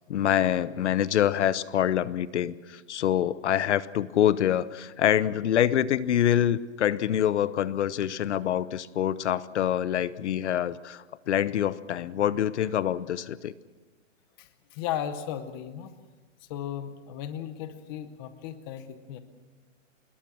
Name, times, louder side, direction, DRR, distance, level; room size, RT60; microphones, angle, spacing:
voice 1, 0.1-13.5, left 10 dB, 60° left, 17 dB, 0.9 m, -26 dB
voice 2, 14.4-15.9 16.4-19.2, left 10 dB, 20° left, 10 dB, 0.8 m, -36 dB
27.0 x 21.5 x 6.2 m, 1.3 s
hypercardioid pair, 175°, 38 cm